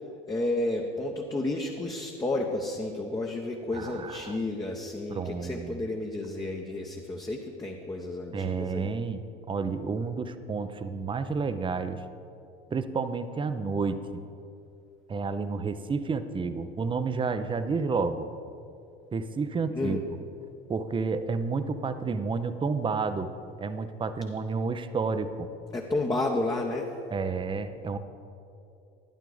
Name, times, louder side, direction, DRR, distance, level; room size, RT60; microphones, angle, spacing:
voice 1, 0.3-8.9 19.7-20.0 25.7-26.9, left 2 dB, 15° left, 0 dB, 0.8 m, -31 dB
voice 2, 3.7-4.4 5.1-5.8 8.3-9.2 9.5-12.0 12.7-14.0 15.1-18.3 19.1-20.0 20.7-23.3 23.6-25.5 27.1-28.0, right 4 dB, 15° right, 11 dB, 0.6 m, -30 dB
12.5 x 10.0 x 3.9 m, 2.6 s
hypercardioid pair, 75°, 30 cm